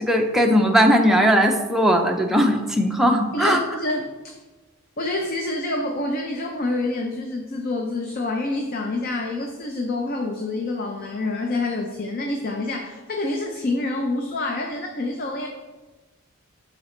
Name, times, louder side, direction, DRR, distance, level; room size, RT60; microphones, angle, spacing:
voice 1, 0.0-3.6, equal, ahead, 2 dB, 0.5 m, -18 dB
voice 2, 3.3-4.3 5.0-15.5, left 2 dB, 45° left, 2 dB, 0.6 m, -27 dB
11.5 x 4.1 x 3.1 m, 1.2 s
head